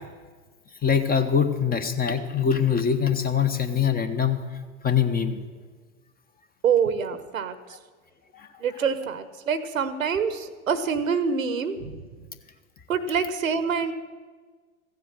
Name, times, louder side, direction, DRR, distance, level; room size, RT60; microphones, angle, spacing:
voice 1, 0.8-4.5 4.8-5.4, left 7 dB, 20° left, 8 dB, 1.1 m, -23 dB
voice 2, 6.6-7.5 8.6-12.0 12.9-13.9, right 6 dB, 90° right, 12 dB, 1.1 m, -26 dB
15.0 x 7.6 x 7.5 m, 1.4 s
hypercardioid pair, 95°, 39 cm